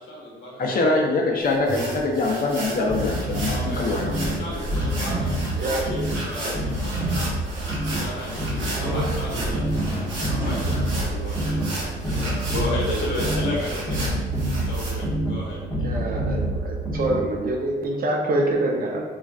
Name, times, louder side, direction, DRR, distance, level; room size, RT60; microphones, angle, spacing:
voice 1, 0.0-0.6 3.5-7.3 7.9-9.8 10.2-14.2 14.6-16.0, left 2 dB, 70° left, -3 dB, 1.0 m, -34 dB
voice 2, 0.6-4.5, left 2 dB, 45° left, 0 dB, 0.5 m, -24 dB
sound 1, 1.4-14.9, right 1 dB, 75° right, 0.8 m, -33 dB
sound 2, 1.7-2.4 5.1-5.9 7.0-7.7 8.7-11.7, right 2 dB, 10° right, 1.3 m, -32 dB
sound 3, 2.9-17.5, right 1 dB, 5° left, 0.8 m, -28 dB
voice 3, 15.8-19.0, right 1 dB, 45° right, -1 dB, 0.6 m, -25 dB
3.1 x 2.5 x 2.4 m, 1.3 s
cardioid pair, 90°, 20 cm